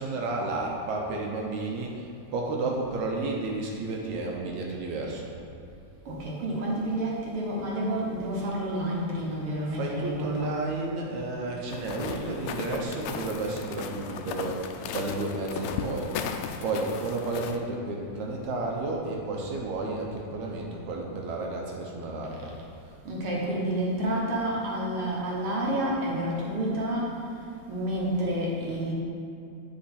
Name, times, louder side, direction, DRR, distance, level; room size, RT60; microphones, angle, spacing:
voice 1, 0.0-5.3 9.7-16.1 16.6-22.5, right 2 dB, 75° right, -1 dB, 2.1 m, -32 dB
voice 2, 6.1-10.5 22.4-22.5 23.0-27.2 27.7-28.9, right 1 dB, 55° right, -4 dB, 1.8 m, -29 dB
sound 1, 11.7-17.6, left 7 dB, 80° left, 1.5 m, -36 dB
8.6 x 5.8 x 4.3 m, 2.6 s
omnidirectional pair, 3.5 m